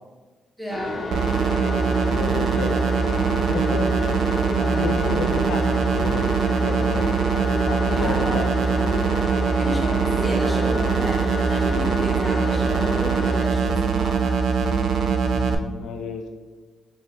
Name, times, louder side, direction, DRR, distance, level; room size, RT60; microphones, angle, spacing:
voice 1, 0.6-1.0 4.5-4.9 7.9-8.4 9.6-11.2 11.5-14.4, equal, 5° right, -2 dB, 0.9 m, -32 dB
sound 1, 0.7-13.5, left 2 dB, 40° left, 0.6 m, -30 dB
sound 2, 1.1-15.5, right 5 dB, 75° right, 0.3 m, -22 dB
voice 2, 1.8-3.0 3.5-4.3 4.6-6.3 6.6-7.1 7.7-9.2 15.3-16.3, left 5 dB, 90° left, 5 dB, 0.3 m, -32 dB
4.6 x 2.9 x 2.8 m, 1.3 s
cardioid pair, 85°, 0 cm